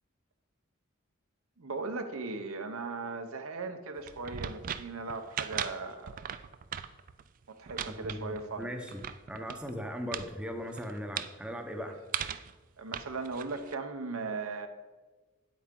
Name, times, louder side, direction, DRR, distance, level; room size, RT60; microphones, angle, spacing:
voice 1, 1.6-6.2 7.5-8.7 12.8-14.7, right 3 dB, 85° right, 6 dB, 0.9 m, -38 dB
sound 1, 4.0-9.7 10.1-10.3 10.6-11.3 12.1-12.5 12.9-13.7, right 9 dB, 40° right, 0.3 m, -39 dB
voice 2, 7.9-9.0 9.3-12.0, equal, 5° right, 3 dB, 0.7 m, -39 dB
8.8 x 8.4 x 3.7 m, 1.3 s
head